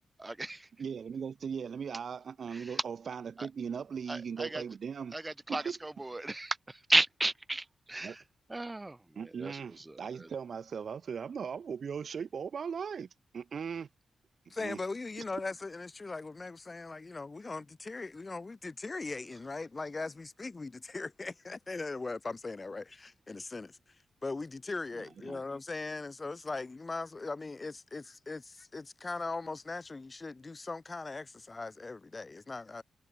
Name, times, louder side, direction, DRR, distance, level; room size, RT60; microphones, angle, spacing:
voice 1, 0.2-0.6 4.1-4.6 5.1-6.6 6.9-8.1 8.5-9.0 9.4-9.5, right 2 dB, 20° right, 1.5 m, -32 dB
voice 2, 0.8-5.2 5.5-5.8 8.0-8.2 9.2-13.9 14.6-14.8 25.0-25.4, right 6 dB, 65° right, 2.4 m, -39 dB
voice 3, 14.5-23.8 24.2-32.8, left 3 dB, 35° left, 1.6 m, -39 dB
cardioid pair, 75°, 0 cm